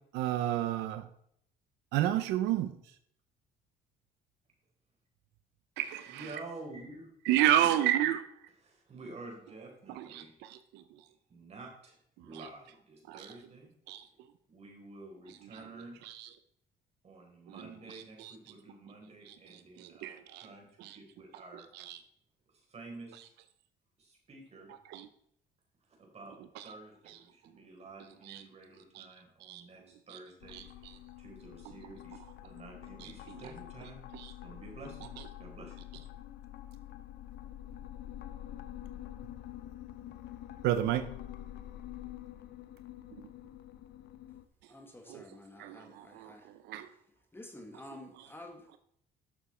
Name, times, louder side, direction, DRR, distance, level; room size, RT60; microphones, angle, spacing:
voice 1, 0.1-1.1 1.9-2.7 5.8-6.3 7.3-8.3 9.9-10.8 13.1-13.3 13.9-14.0 16.1-16.3 17.5-17.6 17.9-18.3 19.3-19.4 19.8-20.5 20.8-21.0 21.7-22.0 24.9-25.1 26.6-26.7 28.3-28.4 28.9-29.1 29.4-29.6 30.1-30.2 30.5-30.6 33.0-33.1 34.1-34.3 40.6-41.1 45.1-45.2 45.6-46.9 48.1-48.3, right 12 dB, 90° right, 11 dB, 0.7 m, -31 dB
voice 2, 6.1-7.1 8.6-10.3 11.3-12.0 12.2-13.7 14.5-16.0 17.0-21.7 22.5-23.3 24.0-24.7 25.9-26.4 26.6-34.0 34.4-35.8, right 2 dB, 40° right, 0 dB, 4.4 m, -50 dB
sound 1, 30.4-44.4, left 12 dB, 75° left, 0.9 m, -47 dB
voice 3, 44.7-46.4 47.3-48.8, left 1 dB, 15° left, 3 dB, 1.8 m, -50 dB
12.0 x 7.1 x 4.4 m, 0.68 s
cardioid pair, 110°, 17 cm